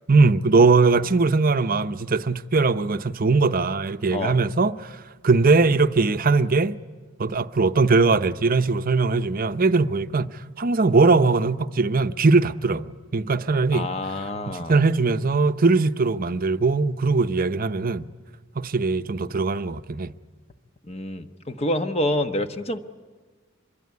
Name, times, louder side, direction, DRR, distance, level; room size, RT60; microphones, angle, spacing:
voice 1, 0.1-5.0 5.2-6.8 7.2-10.3 10.6-13.9 14.5-18.1 18.6-20.1, right 3 dB, 45° right, 0.7 m, -20 dB
voice 2, 13.7-14.8 20.9-22.8, left 1 dB, 30° left, 1.2 m, -27 dB
26.0 x 22.5 x 9.5 m
head